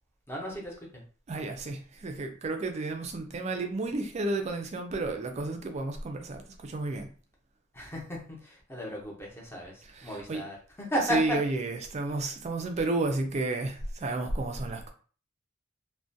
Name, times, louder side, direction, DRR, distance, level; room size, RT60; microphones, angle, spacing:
voice 1, 0.3-1.0 7.7-11.4 12.1-12.2, equal, 10° left, 0.7 m, -34 dB
voice 2, 1.3-7.1 9.9-10.4 11.1-14.9, right 2 dB, 35° right, 0.4 m, -32 dB
2.3 x 2.1 x 2.6 m
head